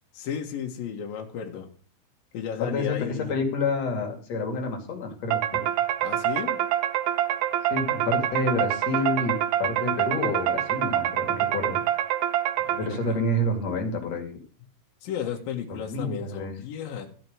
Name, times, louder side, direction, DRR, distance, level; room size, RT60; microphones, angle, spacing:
voice 1, 0.1-1.7 2.3-3.4 6.0-6.6 12.6-13.2 15.0-17.1, left 8 dB, 70° left, 1 dB, 3.3 m, -34 dB
voice 2, 2.6-5.6 7.7-11.8 12.8-14.3 15.7-16.5, left 2 dB, 45° left, 3 dB, 3.1 m, -28 dB
sound 1, 5.3-13.2, right 12 dB, 80° right, 1.7 m, -26 dB
15.0 x 5.3 x 9.4 m, 0.42 s
omnidirectional pair, 4.5 m